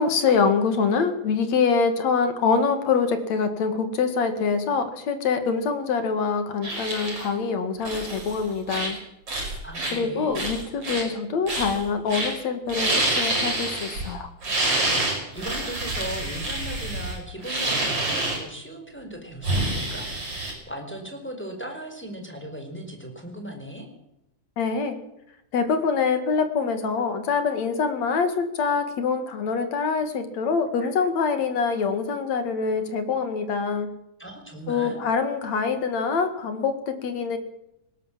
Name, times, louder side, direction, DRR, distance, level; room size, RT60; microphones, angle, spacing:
voice 1, 0.0-9.0 9.9-14.3 24.6-25.0 25.5-33.9 34.7-37.4, left 5 dB, 65° left, 9 dB, 3.2 m, -25 dB
sound 1, 6.6-7.3 7.8-8.4 8.7-9.0 9.3-10.0 10.4-11.1 11.5-11.8 12.1-12.3 12.7-14.1 14.4-18.4 19.4-20.5, right 2 dB, 45° right, 7.4 m, -27 dB
voice 2, 9.6-10.4 15.0-23.9 34.2-35.0, right 1 dB, 5° left, 4 dB, 4.4 m, -38 dB
19.5 x 18.0 x 7.5 m, 0.84 s
omnidirectional pair, 3.5 m